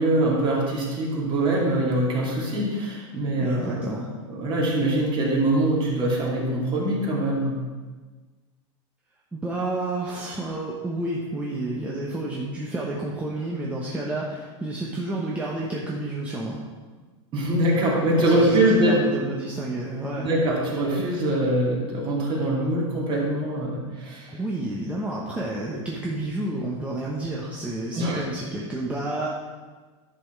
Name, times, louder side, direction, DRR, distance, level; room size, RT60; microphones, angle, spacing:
voice 1, 0.0-3.9 4.3-7.6 17.3-19.0 20.2-24.3 27.9-28.2, right 1 dB, 30° right, -3 dB, 2.7 m, -23 dB
voice 2, 3.4-4.1 9.3-16.6 18.2-20.3 24.3-29.3, right 2 dB, 10° right, -5 dB, 1.0 m, -30 dB
11.0 x 6.2 x 4.6 m, 1.4 s
supercardioid pair, 135°, 16 cm